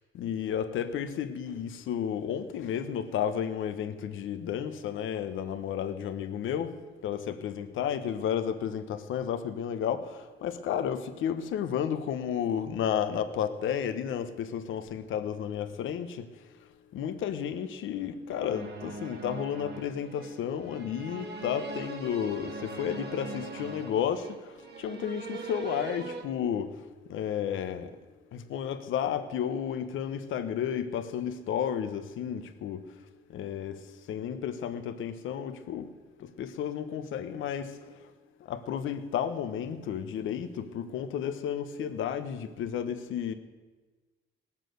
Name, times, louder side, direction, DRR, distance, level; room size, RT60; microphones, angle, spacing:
voice 1, 0.1-6.7 7.0-10.1 10.4-16.3 16.9-24.3 24.8-26.7 27.1-27.9 28.3-32.8 33.3-33.8 34.1-35.9 36.2-37.7 38.5-43.3, left 8 dB, 80° left, 9 dB, 1.1 m, -32 dB
sound 1, 18.3-26.2, right 3 dB, 55° right, 2.0 m, -41 dB
18.0 x 7.4 x 7.9 m, 1.3 s
cardioid pair, 90°, 20 cm